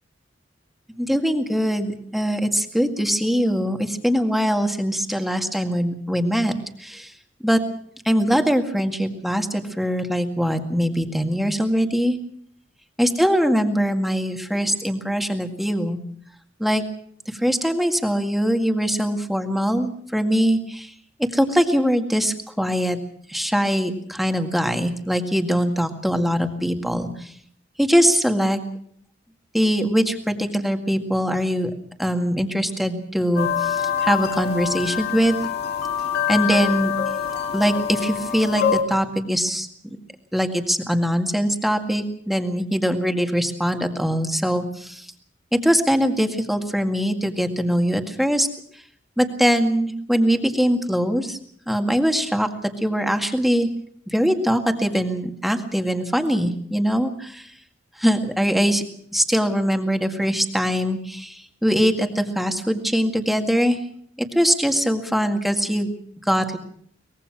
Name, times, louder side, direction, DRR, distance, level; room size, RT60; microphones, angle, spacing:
voice 1, 1.0-6.5 6.8-7.1 7.4-7.6 8.1-12.2 13.0-16.0 16.6-16.8 17.4-20.9 21.3-23.0 23.3-27.1 27.8-28.6 29.5-31.7 32.0-35.4 36.3-36.9 37.5-39.7 40.3-45.0 45.5-48.5 49.2-51.4 51.7-52.5 52.8-53.7 54.1-57.4 58.0-58.8 59.1-61.3 61.6-63.8 64.3-65.9 66.3-66.6, equal, ahead, 5 dB, 2.0 m, -22 dB
sound 1, 33.4-38.8, left 8 dB, 55° left, 2.4 m, -25 dB
23.5 x 20.5 x 6.1 m, 0.62 s
head